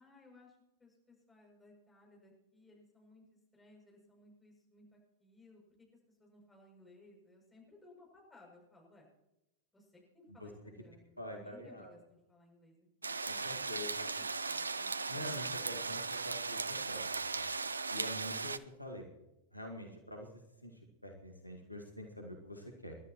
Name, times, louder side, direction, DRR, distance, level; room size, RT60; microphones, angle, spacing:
voice 1, 0.0-3.2 3.5-5.6 6.2-9.1 9.7-13.2 13.6-16.1, left 2 dB, 10° left, -1 dB, 7.2 m, -61 dB
voice 2, 11.2-11.9 13.2-14.1 15.1-17.0 17.3-17.5 17.9-19.1 19.5-20.3 20.6-23.0, left 1 dB, 90° left, 2 dB, 2.0 m, -46 dB
sound 1, 13.0-18.6, right 4 dB, 75° right, 0.5 m, -37 dB
29.5 x 12.0 x 3.1 m, 0.90 s
figure-of-eight pair, 90°, 0 cm